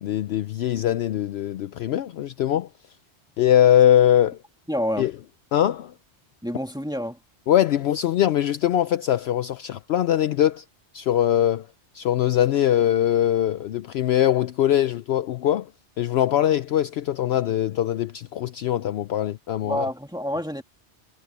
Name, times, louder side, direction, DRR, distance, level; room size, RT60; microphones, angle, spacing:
voice 1, 0.0-2.7 3.4-4.4 5.0-5.1 5.5-5.9 7.5-10.6 10.9-11.7 11.9-15.7 16.0-19.9, left 11 dB, 65° left, 0.8 m, -22 dB
voice 2, 4.7-5.1 6.4-7.2 19.6-20.6, equal, 5° right, 2.2 m, -28 dB
omnidirectional pair, 1.2 m